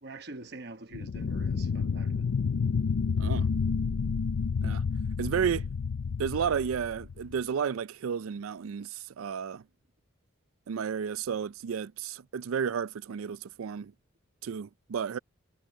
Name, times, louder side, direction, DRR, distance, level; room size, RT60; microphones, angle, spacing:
voice 1, 0.0-2.1, right 2 dB, 50° right, 1.1 m, -45 dB
sound 1, 0.9-7.4, left 5 dB, 80° left, 0.5 m, -30 dB
voice 2, 5.2-5.7 6.2-9.6 10.7-13.9 14.4-15.2, right 7 dB, 85° right, 0.4 m, -32 dB
head